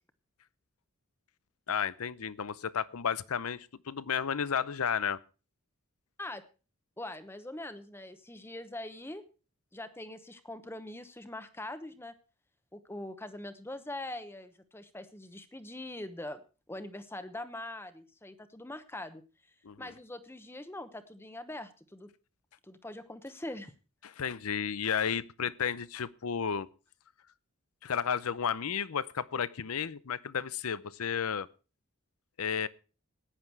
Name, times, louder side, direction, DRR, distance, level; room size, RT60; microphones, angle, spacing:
voice 1, 1.7-5.2 19.6-19.9 24.0-26.7 27.8-31.5 32.4-32.7, left 7 dB, 80° left, 0.6 m, -32 dB
voice 2, 7.0-9.2 9.7-12.1 12.7-16.4 16.7-19.2 19.8-22.1 22.6-23.7, left 1 dB, 10° left, 0.9 m, -42 dB
14.5 x 9.9 x 4.6 m
head